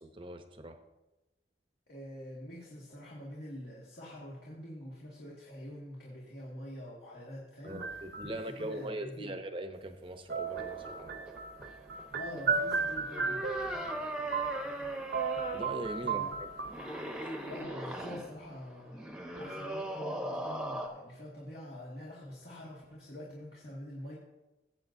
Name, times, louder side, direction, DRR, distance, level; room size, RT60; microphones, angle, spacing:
voice 1, 0.0-0.8 7.6-11.2 15.5-16.5, right 1 dB, 30° right, 7 dB, 0.8 m, -41 dB
voice 2, 1.9-9.3 12.1-13.5 14.0-14.3 16.0-16.4 17.5-24.2, equal, 60° left, -5 dB, 2.0 m, -46 dB
sound 1, 7.7-8.7 10.3-14.9 15.1-17.2, right 5 dB, 65° right, 0.9 m, -35 dB
sound 2, 10.4-20.9, equal, 5° right, 1.0 m, -40 dB
17.0 x 7.9 x 2.7 m, 1.0 s
head